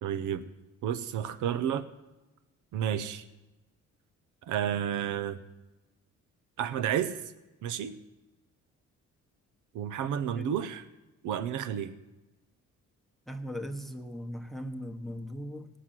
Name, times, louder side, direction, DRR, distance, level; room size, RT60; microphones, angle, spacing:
voice 1, 0.0-0.4 0.8-1.8 2.7-3.2 4.5-5.4 6.6-7.2 7.6-7.9 9.7-10.8 11.2-12.0, right 9 dB, 85° right, 12 dB, 0.8 m, -31 dB
voice 2, 13.3-15.7, equal, ahead, 6 dB, 1.1 m, -39 dB
17.5 x 6.6 x 7.5 m, 1.0 s
cardioid pair, 90°, 30 cm